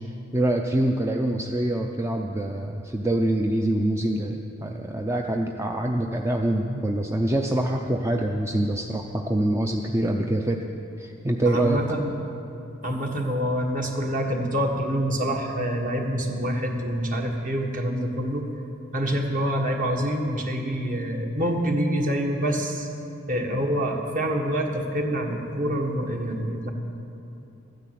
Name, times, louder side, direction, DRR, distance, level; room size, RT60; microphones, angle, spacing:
voice 1, 0.3-10.6 11.0-11.8, right 1 dB, 15° right, 2 dB, 0.5 m, -25 dB
voice 2, 11.4-12.1 12.8-18.4 18.9-22.9 23.3-26.7, equal, 40° right, 1 dB, 1.6 m, -26 dB
13.0 x 9.6 x 8.3 m, 2.7 s
head